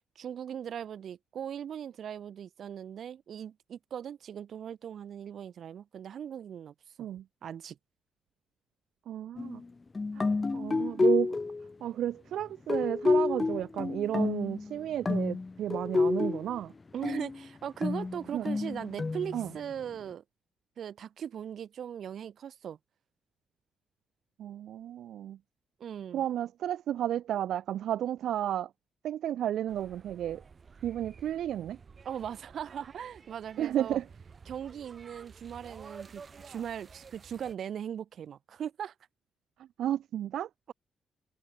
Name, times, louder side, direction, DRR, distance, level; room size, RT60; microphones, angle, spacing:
voice 1, 0.2-7.1 7.4-7.8 16.9-20.2 20.8-22.8 25.8-26.2 32.0-34.0 34.5-38.9, right 9 dB, 55° right, 4.3 m, -39 dB
voice 2, 9.1-9.6 10.2-10.3 10.5-11.4 11.8-16.7 18.3-18.5 19.3-19.5 24.4-25.4 26.1-28.7 29.0-30.4 30.8-31.8 33.6-34.1 39.8-40.5, right 11 dB, 75° right, 0.6 m, -32 dB
sound 1, 9.4-9.6 9.9-11.7 12.7-14.8 15.1-16.6 17.0-17.5 17.8-19.7, left 3 dB, 20° left, 0.7 m, -29 dB
sound 2, 29.7-37.6, right 5 dB, 30° right, 4.9 m, -51 dB
cardioid pair, 145°, 0 cm